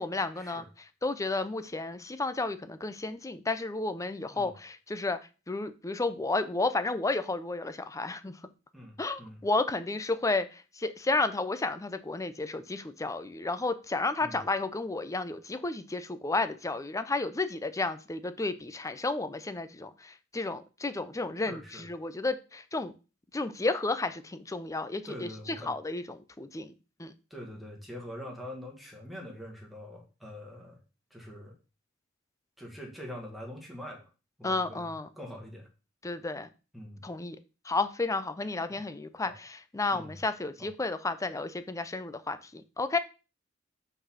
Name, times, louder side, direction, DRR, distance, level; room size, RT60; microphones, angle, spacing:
voice 1, 0.0-5.2 5.5-8.4 9.0-22.9 23.3-26.7 27.0-27.1 34.4-35.1 36.0-36.5 37.0-37.4 37.6-43.0, left 3 dB, 15° left, 11 dB, 0.5 m, -32 dB
voice 2, 8.7-9.4 14.2-14.4 21.5-21.8 25.0-25.8 27.3-30.8 31.1-31.6 32.6-34.1 34.4-34.9 35.2-35.7 36.7-37.0 38.7-38.8 39.2-39.3 39.9-40.1 40.6-40.7, equal, ahead, -1 dB, 1.9 m, -44 dB
5.4 x 4.1 x 5.7 m, 0.32 s
head